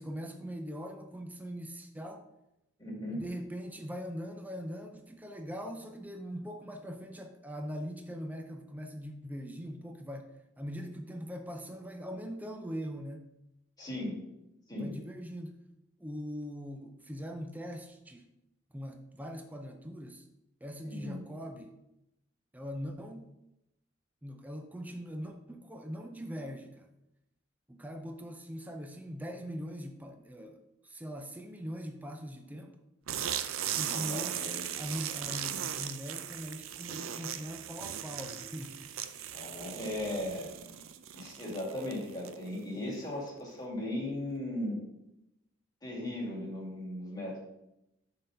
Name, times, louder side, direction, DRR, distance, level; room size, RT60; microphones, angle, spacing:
voice 1, 0.0-2.3 3.1-13.3 14.8-15.6 16.0-18.3 18.7-20.3 20.6-21.8 22.5-23.3 24.2-26.9 27.7-32.8 33.8-34.4 34.8-39.1, equal, 10° right, 4 dB, 0.4 m, -41 dB
voice 2, 2.8-3.3 13.8-14.2 14.7-14.9 20.8-21.2 33.9-34.6 39.3-40.5 41.1-44.8 45.8-47.4, left 1 dB, 20° left, -5 dB, 2.1 m, -37 dB
sound 1, 33.1-42.6, right 10 dB, 85° right, 0.5 m, -38 dB
6.4 x 3.8 x 5.4 m, 0.89 s
head